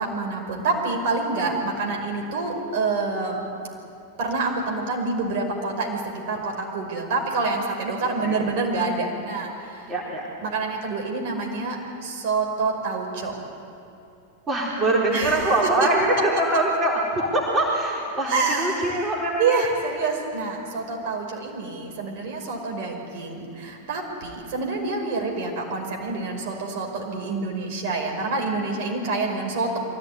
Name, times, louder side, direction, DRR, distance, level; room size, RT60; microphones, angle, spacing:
voice 1, 0.0-3.4 4.2-9.9 10.4-13.3 15.1-15.5 18.3-19.0 19.4-29.8, right 3 dB, 50° right, 1 dB, 5.4 m, -27 dB
voice 2, 9.9-10.3 14.5-19.6, right 2 dB, 20° right, -3 dB, 4.1 m, -23 dB
23.5 x 16.5 x 9.6 m, 2.6 s
figure-of-eight pair, 90°, 0 cm